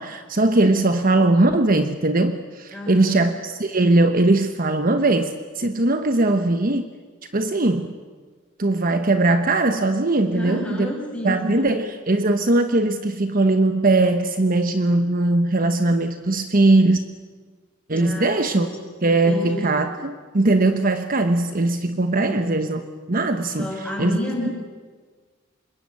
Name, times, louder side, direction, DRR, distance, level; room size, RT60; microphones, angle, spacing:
voice 1, 0.0-6.9 7.3-7.9 8.6-10.9 11.2-17.0 17.9-18.7 19.0-23.7 24.0-24.2, right 2 dB, 40° right, 8 dB, 1.0 m, -20 dB
voice 2, 2.7-3.2 10.3-11.8 18.0-18.8 19.2-19.8 22.2-22.5 23.6-24.5, left 1 dB, 5° left, -2 dB, 7.0 m, -30 dB
26.0 x 22.0 x 8.4 m, 1.4 s
head